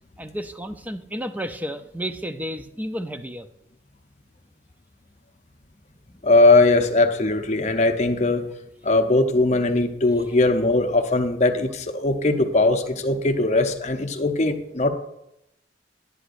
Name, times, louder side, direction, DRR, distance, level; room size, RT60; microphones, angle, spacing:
voice 1, 0.2-3.5, equal, 10° right, 9 dB, 0.4 m, -32 dB
voice 2, 6.2-8.4 8.8-14.9, left 2 dB, 40° left, 6 dB, 0.8 m, -20 dB
11.5 x 9.8 x 2.6 m, 0.83 s
head